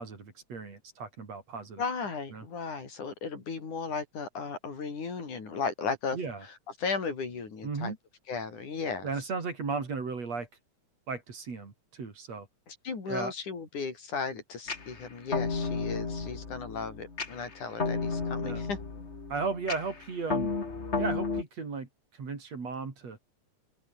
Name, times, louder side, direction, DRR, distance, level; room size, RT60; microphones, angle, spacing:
voice 1, 0.0-1.8 2.3-2.4 6.1-6.5 7.6-8.0 9.0-10.5 11.1-12.5 13.1-13.3 18.4-18.7 19.3-20.5 21.0-23.2, right 4 dB, 60° right, 5.4 m, -35 dB
voice 2, 1.8-7.9 8.3-9.1 12.7-18.8, left 5 dB, 85° left, 6.3 m, -35 dB
sound 1, 14.7-21.4, left 4 dB, 25° left, 2.1 m, -33 dB
open air
omnidirectional pair, 3.4 m